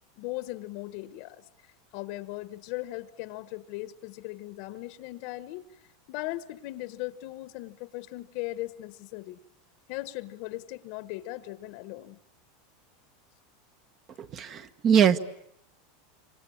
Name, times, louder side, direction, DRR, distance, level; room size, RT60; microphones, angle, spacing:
voice 1, 0.2-1.4 1.9-5.6 6.1-9.4 9.9-12.2, left 18 dB, 55° left, 13 dB, 1.2 m, -38 dB
voice 2, 14.2-15.2, right 8 dB, 30° right, 11 dB, 1.2 m, -22 dB
27.0 x 25.5 x 8.6 m, 0.76 s
supercardioid pair, 155°, 0 cm